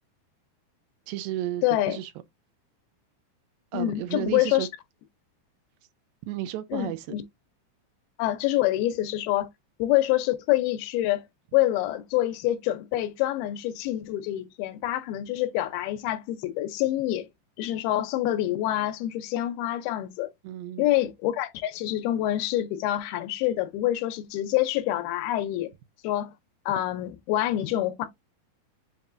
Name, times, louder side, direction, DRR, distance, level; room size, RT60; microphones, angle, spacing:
voice 1, 1.1-2.1 3.7-4.7 6.3-7.1 20.4-20.9, right 13 dB, 80° right, 2.2 m, -33 dB
voice 2, 1.6-2.0 3.7-4.7 6.7-7.2 8.2-9.5 9.8-11.2 11.5-17.3 17.6-20.3 20.8-25.7 26.0-26.3 26.7-28.1, left 14 dB, 85° left, 2.6 m, -26 dB
6.9 x 2.7 x 2.5 m
omnidirectional pair, 4.3 m